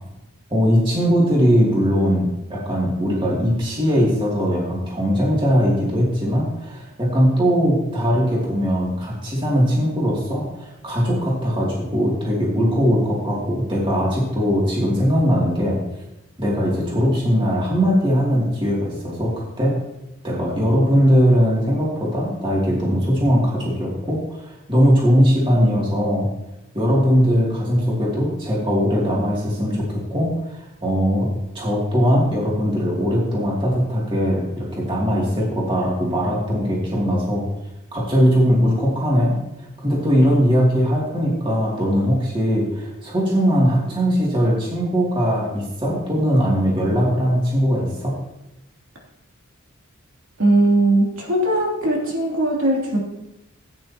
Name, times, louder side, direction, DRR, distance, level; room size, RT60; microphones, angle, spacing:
voice 1, 0.5-15.8 16.4-19.8 20.2-26.3 26.7-30.3 30.8-31.3 31.5-37.4 37.9-39.4 39.8-48.2, equal, 25° right, -5 dB, 2.7 m, -20 dB
voice 2, 50.4-53.0, right 1 dB, 70° right, -2 dB, 2.9 m, -19 dB
16.0 x 9.3 x 2.9 m, 0.92 s
head